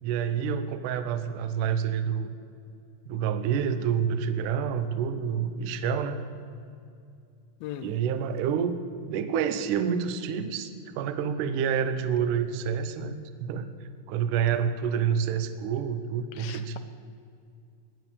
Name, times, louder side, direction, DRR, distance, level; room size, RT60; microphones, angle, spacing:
voice 1, 0.0-2.3 3.1-6.2 7.8-8.8 9.1-10.7 11.0-13.7 14.1-16.8, right 7 dB, 80° right, 10 dB, 1.8 m, -28 dB
voice 2, 7.6-7.9 16.4-16.8, left 11 dB, 80° left, 10 dB, 2.1 m, -39 dB
18.5 x 11.0 x 7.0 m, 2.5 s
omnidirectional pair, 4.8 m